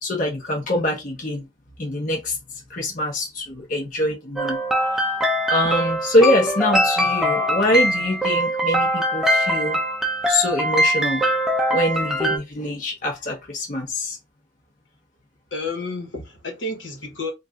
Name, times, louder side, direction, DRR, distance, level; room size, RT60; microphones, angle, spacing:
voice 1, 0.0-1.4 1.8-4.6 4.9-5.1 5.5-9.8 10.3-11.3 11.7-14.2, left 1 dB, 45° left, 0.8 m, -24 dB
sound 1, 4.4-12.4, equal, 5° right, 0.5 m, -22 dB
voice 2, 15.5-17.3, left 2 dB, 85° left, 1.2 m, -30 dB
2.5 x 2.5 x 3.4 m
head